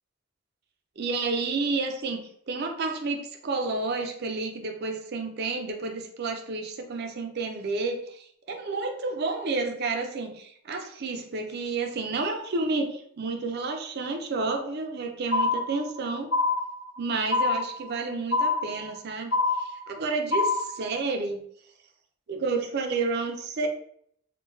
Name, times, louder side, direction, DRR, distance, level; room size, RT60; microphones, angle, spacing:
voice 1, 1.0-16.3 17.0-19.3 19.9-21.4 22.3-23.7, right 3 dB, 50° right, 5 dB, 0.5 m, -30 dB
sound 1, 15.3-16.0 16.3-17.0 17.3-18.0 18.3-19.0 19.3-20.0 20.3-21.0, left 3 dB, 80° left, 0.6 m, -26 dB
3.7 x 2.2 x 2.6 m, 0.65 s
head